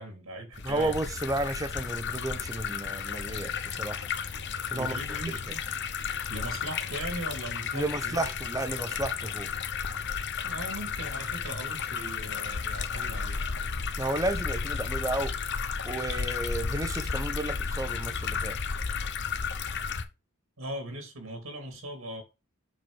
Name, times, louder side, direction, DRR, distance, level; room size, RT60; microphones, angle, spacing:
voice 1, 0.0-0.9 4.7-5.6 6.3-8.3 10.4-13.4 20.6-22.2, right 1 dB, 70° right, 2.4 m, -39 dB
sound 1, 0.5-20.0, left 6 dB, 50° left, 0.9 m, -33 dB
voice 2, 0.6-4.1 4.7-5.0 7.7-9.5 14.0-15.4 15.8-18.6, right 2 dB, 15° right, 1.0 m, -32 dB
7.7 x 6.1 x 4.8 m
head